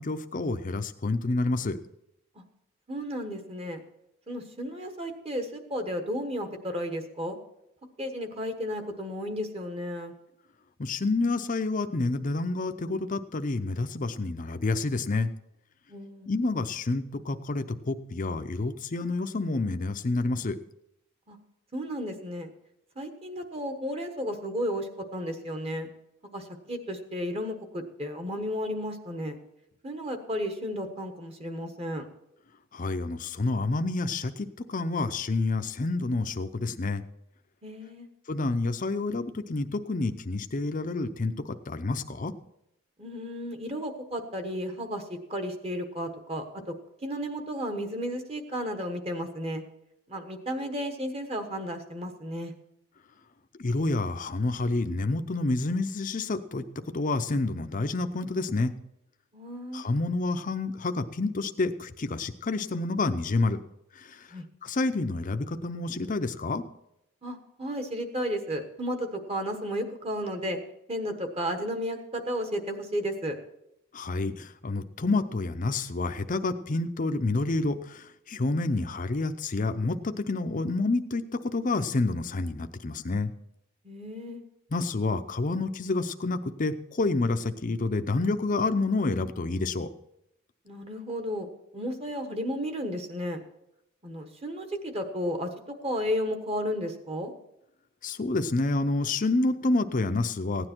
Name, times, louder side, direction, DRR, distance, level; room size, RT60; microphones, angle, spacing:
voice 1, 0.0-1.8 10.8-15.3 16.3-20.6 32.7-37.0 38.3-42.3 53.6-56.6 56.9-58.7 59.7-63.6 64.0-64.2 64.6-66.6 73.9-83.3 84.7-89.9 98.0-100.7, left 3 dB, 40° left, 9 dB, 0.6 m, -28 dB
voice 2, 2.9-3.8 4.3-7.4 8.0-10.1 15.9-16.3 21.3-21.4 21.7-22.5 23.0-25.9 26.3-29.4 29.8-32.0 37.6-38.1 43.0-45.0 45.3-46.7 47.0-49.6 50.1-52.5 59.3-59.8 64.3-64.4 67.2-70.6 70.9-73.4 83.8-84.4 90.6-91.5 91.7-93.4 94.0-95.5 95.8-97.3, equal, 30° right, 6 dB, 1.3 m, -33 dB
16.0 x 9.8 x 4.5 m, 0.83 s
head